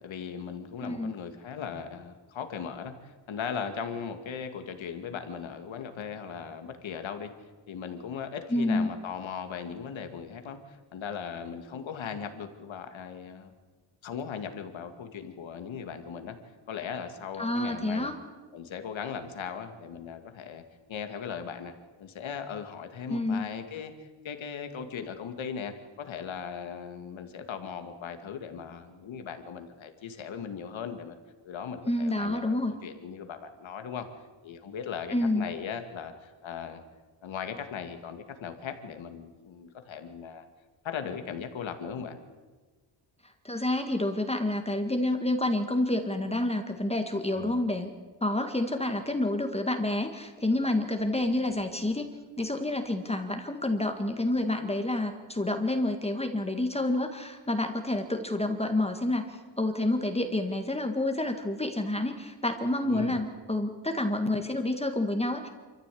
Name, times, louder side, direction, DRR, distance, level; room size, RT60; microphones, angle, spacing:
voice 1, 0.0-7.3 7.7-13.5 14.0-16.4 16.7-18.1 18.5-20.6 20.9-21.7 22.0-31.2 31.4-34.1 34.4-36.8 37.2-40.4 40.8-42.2 47.3-47.6 62.9-63.2, left 7 dB, 75° left, 7 dB, 2.3 m, -38 dB
voice 2, 0.8-1.1 8.5-8.9 17.4-18.2 23.1-23.5 31.9-32.7 35.1-35.5 43.4-47.9 48.2-52.1 52.4-65.5, left 1 dB, 15° left, 5 dB, 1.8 m, -28 dB
25.5 x 14.5 x 8.6 m, 1.4 s
cardioid pair, 110°, 47 cm